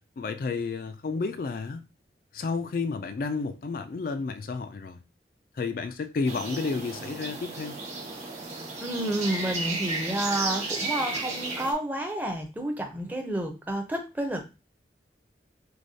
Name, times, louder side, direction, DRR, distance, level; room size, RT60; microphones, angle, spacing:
voice 1, 0.2-1.8 2.3-5.0 5.5-7.8, left 4 dB, 50° left, 0.3 m, -31 dB
sound 1, 6.2-11.7, right 3 dB, 40° right, 1.3 m, -33 dB
voice 2, 8.8-14.4, right 1 dB, 10° right, 0.6 m, -30 dB
6.2 x 2.3 x 2.7 m
head